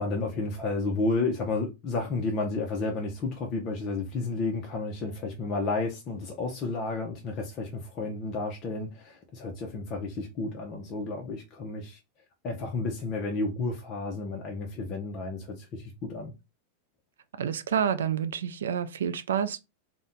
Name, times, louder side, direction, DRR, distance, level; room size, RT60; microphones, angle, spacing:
voice 1, 0.0-12.0 12.4-16.3, left 3 dB, 35° left, 0.6 m, -31 dB
voice 2, 17.4-19.6, right 8 dB, 90° right, 0.3 m, -28 dB
2.6 x 2.1 x 3.7 m
hypercardioid pair, 125°, 0 cm